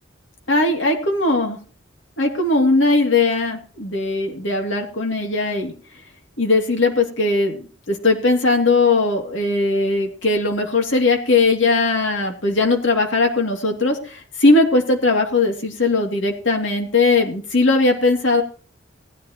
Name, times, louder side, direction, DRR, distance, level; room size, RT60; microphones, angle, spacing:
voice 1, 0.5-1.6 2.2-5.7 6.4-18.4, left 3 dB, 70° left, 2 dB, 2.6 m, -19 dB
19.0 x 10.0 x 3.0 m, 0.40 s
head